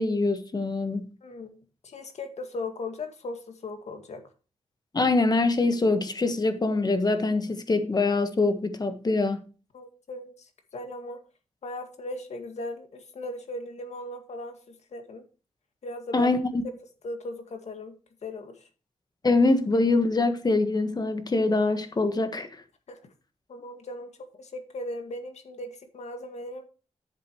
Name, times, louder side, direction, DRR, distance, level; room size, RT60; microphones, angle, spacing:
voice 1, 0.0-1.1 4.9-9.4 16.1-16.4 19.2-22.5, left 3 dB, 35° left, 1.4 m, -24 dB
voice 2, 1.2-1.6 1.8-4.2 9.7-11.2 11.6-15.2 15.8-16.3 17.0-17.9 18.2-18.7 22.9-23.0 23.5-24.1 24.4-26.6, left 1 dB, 70° left, 2.0 m, -38 dB
11.0 x 7.7 x 3.1 m
cardioid pair, 85°, 12 cm